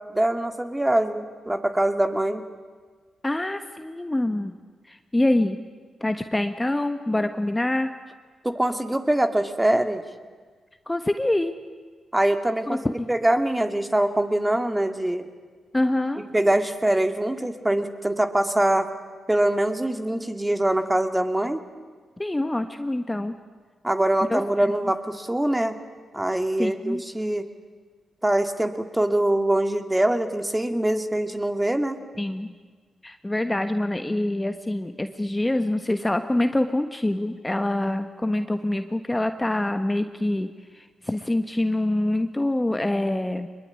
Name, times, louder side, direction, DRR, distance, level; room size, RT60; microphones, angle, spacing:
voice 1, 0.1-2.4 8.4-10.0 12.1-12.8 13.1-15.3 16.3-18.9 19.3-21.6 23.8-25.8 26.1-27.5 28.2-32.0, right 1 dB, 15° right, 7 dB, 2.5 m, -23 dB
voice 2, 3.2-4.6 4.9-5.6 6.0-7.9 10.9-11.5 12.7-13.1 15.7-16.2 22.2-23.3 24.3-24.7 26.6-27.0 32.2-32.6 33.0-43.5, left 1 dB, 15° left, 8 dB, 1.4 m, -25 dB
23.0 x 21.5 x 9.7 m, 1.5 s
hypercardioid pair, 40°, 0 cm